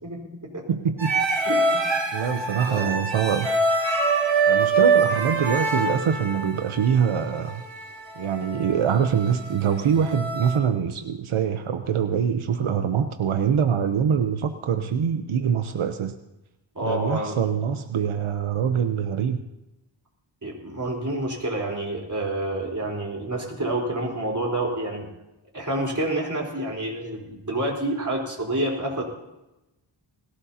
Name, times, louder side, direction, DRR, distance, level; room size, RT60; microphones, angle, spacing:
voice 1, 0.0-0.6 1.5-1.6 2.7-3.0 16.8-17.4 20.4-25.1 25.5-29.0, right 1 dB, 40° right, -1 dB, 4.0 m, -28 dB
voice 2, 0.7-1.2 2.1-3.6 4.5-7.6 8.2-16.1 16.8-19.4, right 7 dB, 90° right, 7 dB, 0.8 m, -24 dB
sound 1, 1.0-10.6, right 3 dB, 65° right, 2.6 m, -25 dB
20.0 x 16.5 x 2.8 m, 0.94 s
wide cardioid pair, 70°, 48 cm